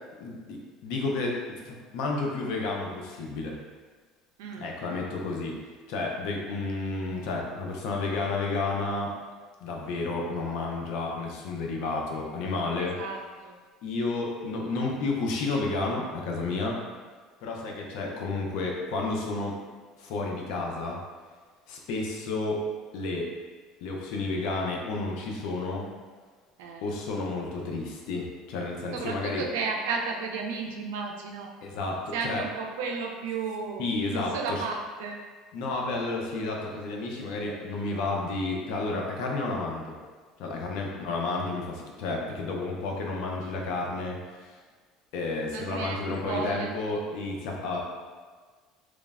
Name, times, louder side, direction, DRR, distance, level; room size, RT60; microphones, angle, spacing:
voice 1, 0.2-3.5 4.6-5.6 5.9-9.1 9.6-12.9 13.8-16.8 17.4-19.6 20.0-21.0 21.7-22.6 22.9-23.3 23.8-25.8 26.8-29.4 31.6-32.4 33.8-34.6 35.5-39.9 40.4-44.6 45.1-47.8, left 3 dB, 75° left, 0 dB, 0.4 m, -31 dB
voice 2, 12.8-13.6 26.6-26.9 28.9-31.5 32.1-35.2 40.8-41.0 45.5-46.7, right 4 dB, 90° right, 1 dB, 0.3 m, -33 dB
3.1 x 2.0 x 2.3 m, 1.5 s
supercardioid pair, 110°, 0 cm